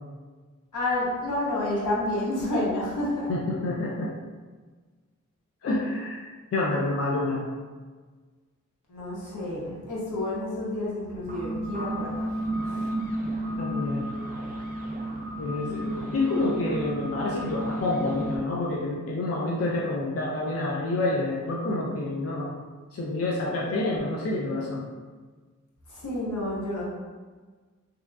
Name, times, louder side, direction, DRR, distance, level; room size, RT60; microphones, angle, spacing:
voice 1, 0.7-3.3 8.9-12.1 12.7-12.8 25.9-26.8, left 1 dB, 80° left, -7 dB, 0.8 m, -29 dB
voice 2, 3.3-4.1 5.6-6.2 6.5-7.5 13.6-14.1 15.4-22.6 22.9-24.8, left 2 dB, 50° left, -3 dB, 0.4 m, -28 dB
sound 1, 11.2-18.4, equal, 30° right, 0.4 m, -32 dB
2.7 x 2.3 x 2.3 m, 1.4 s
wide cardioid pair, 60°, 30 cm